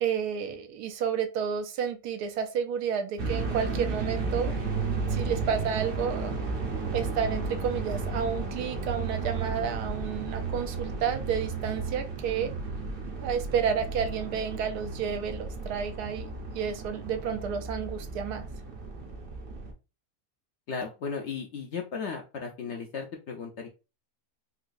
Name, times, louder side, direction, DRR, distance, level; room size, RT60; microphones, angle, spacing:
voice 1, 0.0-4.5 5.1-6.3 6.9-12.5 13.2-16.3 16.5-18.5, right 7 dB, 85° right, 7 dB, 1.2 m, -31 dB
sound 1, 3.2-19.7, right 4 dB, 50° right, 0.7 m, -33 dB
voice 2, 20.7-23.7, left 5 dB, 65° left, 3 dB, 0.7 m, -35 dB
4.0 x 2.3 x 2.5 m, 0.30 s
omnidirectional pair, 1.6 m